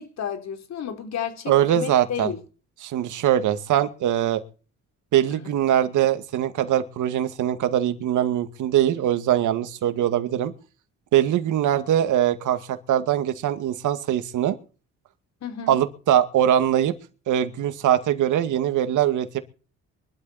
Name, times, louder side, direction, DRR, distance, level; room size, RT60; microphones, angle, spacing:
voice 1, 0.0-2.4 5.3-5.5 15.4-15.8, left 8 dB, 60° left, 3.7 m, -32 dB
voice 2, 1.5-2.3 2.8-4.4 5.1-10.5 11.1-14.6 15.7-16.9 17.3-19.4, right 11 dB, 80° right, 2.2 m, -22 dB
23.0 x 12.5 x 4.3 m
cardioid pair, 90°, 30 cm